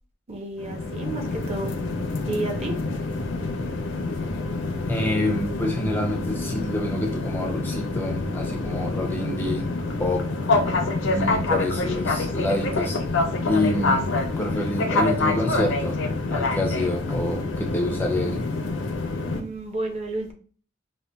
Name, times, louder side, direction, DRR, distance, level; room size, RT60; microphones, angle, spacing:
voice 1, 0.3-1.7 2.3-2.8 19.3-20.3, right 2 dB, 35° right, 0.7 m, -31 dB
sound 1, 0.6-19.4, left 2 dB, 70° left, 0.5 m, -27 dB
voice 2, 4.9-9.7 10.0-10.3 11.0-13.0 13.4-14.1 14.4-16.0 16.3-18.4, left 1 dB, 10° left, 0.4 m, -27 dB
5.0 x 2.2 x 2.2 m
head